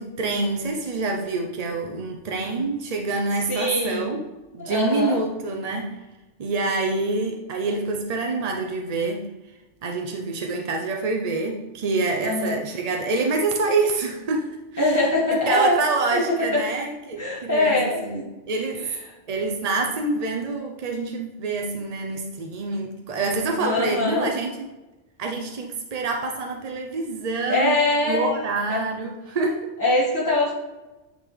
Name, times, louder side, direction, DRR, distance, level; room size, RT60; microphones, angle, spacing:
voice 1, 0.0-4.2 4.5-5.9 6.4-9.2 9.8-15.1 15.4-18.8 19.3-24.5 25.2-27.8 28.0-29.7, right 3 dB, 50° right, 2 dB, 0.4 m, -26 dB
voice 2, 3.5-4.1 4.6-5.2 12.2-12.6 14.8-15.8 16.1-16.2 16.5-16.6 17.2-18.3 18.8-18.9 23.6-24.3 27.5-28.3 28.7-28.8 29.8-30.5, left 2 dB, 15° right, -6 dB, 1.4 m, -22 dB
9.2 x 3.8 x 3.2 m, 1.1 s
omnidirectional pair, 1.4 m